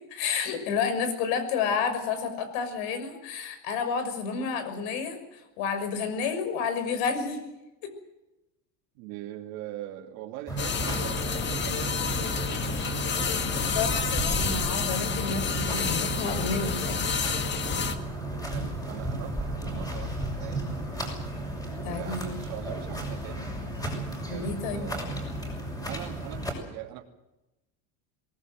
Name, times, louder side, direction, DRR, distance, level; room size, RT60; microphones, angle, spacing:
voice 1, 0.1-7.4 7.8-7.9 13.5-17.4 21.7-22.4 24.3-24.9, left 5 dB, 75° left, 10 dB, 6.1 m, -30 dB
voice 2, 8.9-12.6 18.5-20.8 21.9-23.5 24.3-25.2 25.9-27.0, right 13 dB, 85° right, 2 dB, 3.0 m, -42 dB
sound 1, 10.5-26.5, right 1 dB, 10° left, 6.5 m, -34 dB
sound 2, 10.6-18.0, left 6 dB, 25° left, 2.0 m, -30 dB
23.0 x 19.5 x 7.9 m, 0.96 s
cardioid pair, 155°, 40 cm